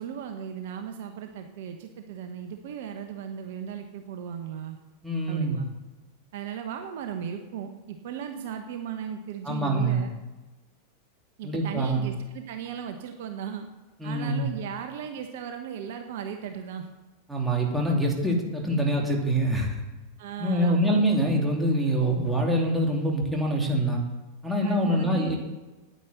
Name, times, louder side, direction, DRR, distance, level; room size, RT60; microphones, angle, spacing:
voice 1, 0.0-4.8 5.3-5.7 6.3-10.1 11.4-13.7 14.0-16.9 20.2-21.0 24.6-25.3, right 8 dB, 55° right, 6 dB, 1.0 m, -36 dB
voice 2, 5.0-5.6 9.4-10.0 11.4-12.1 14.0-14.5 17.3-19.8 20.4-24.0 24.4-25.4, right 1 dB, 5° right, -1 dB, 2.8 m, -25 dB
9.8 x 9.4 x 7.7 m, 1.1 s
figure-of-eight pair, 90°, 0 cm